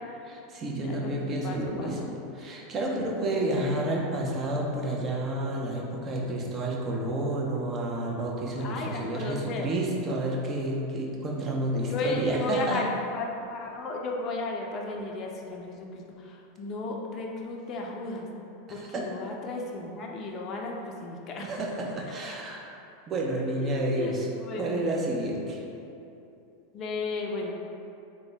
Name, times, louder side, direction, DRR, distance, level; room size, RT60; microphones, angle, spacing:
voice 1, 0.2-2.0 2.4-12.8 18.7-19.1 21.4-22.6 23.1-24.3 24.6-25.6, right 1 dB, 30° right, -2 dB, 0.6 m, -30 dB
voice 2, 1.4-2.1 8.6-9.7 11.9-18.3 18.7-21.5 23.6-25.0 26.7-27.5, left 2 dB, 40° left, 0 dB, 0.4 m, -34 dB
3.6 x 2.1 x 3.3 m, 2.7 s
hypercardioid pair, 110°, 0 cm